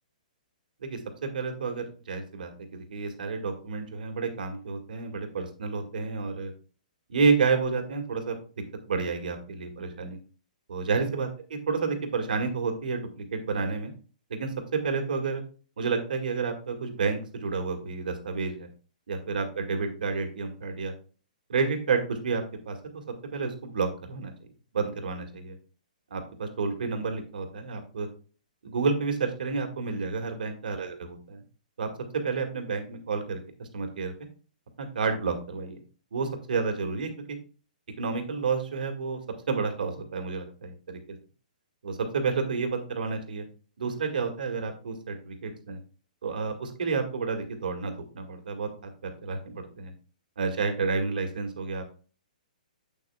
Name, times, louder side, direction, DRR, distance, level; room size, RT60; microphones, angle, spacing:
voice 1, 0.8-6.5 7.1-8.4 8.9-10.2 10.7-13.9 14.3-15.4 15.8-18.7 19.1-20.9 21.5-23.0 23.3-24.3 24.7-25.6 26.1-28.1 28.6-31.4 31.8-34.1 34.8-35.8 36.1-37.4 38.0-39.2 39.5-41.0 41.8-43.5 43.8-45.8 46.2-48.9 49.2-49.9 50.4-51.8, right 4 dB, 75° right, 4 dB, 1.9 m, -30 dB
8.2 x 7.5 x 2.3 m, 0.38 s
hypercardioid pair, 150°, 5 cm